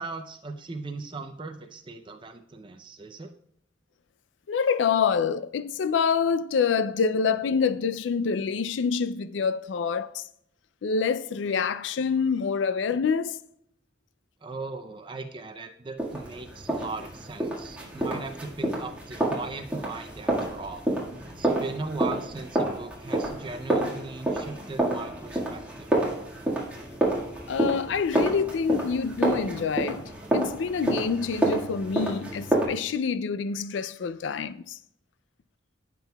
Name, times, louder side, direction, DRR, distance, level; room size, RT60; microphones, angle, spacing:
voice 1, 0.0-3.3 14.4-20.8 21.4-26.0, right 3 dB, 25° right, 0.5 m, -38 dB
voice 2, 4.5-10.3 10.8-13.4 27.5-34.8, left 6 dB, 80° left, 0.4 m, -26 dB
sound 1, 16.0-32.7, right 1 dB, 10° right, 1.7 m, -29 dB
14.5 x 6.0 x 2.3 m
head